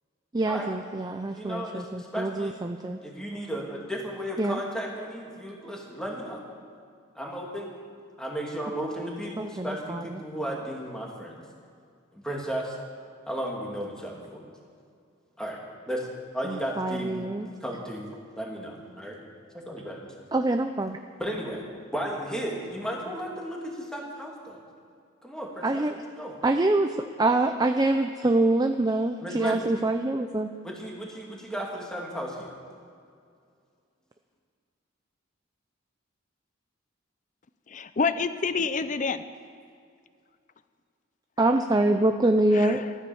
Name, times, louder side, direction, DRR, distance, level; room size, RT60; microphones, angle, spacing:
voice 1, 0.3-3.0 4.4-4.6 9.4-10.0 16.5-17.5 20.3-21.0 25.6-25.9 26.4-26.9 27.2-30.5 41.4-42.8, right 2 dB, 20° right, 5 dB, 0.5 m, -25 dB
voice 2, 1.3-2.7 3.0-6.4 7.2-7.7 8.2-11.4 12.1-12.8 13.3-14.4 15.4-15.6 15.9-16.1 16.3-17.1 17.6-19.2 19.5-20.1 21.2-21.6 21.9-24.6 25.2-25.8 26.2-26.4 29.2-29.7 30.6-32.5, equal, 5° left, -2 dB, 2.4 m, -34 dB
voice 3, 37.7-39.3 42.5-42.9, left 5 dB, 40° left, 12 dB, 0.5 m, -28 dB
14.0 x 13.5 x 7.1 m, 2.3 s
head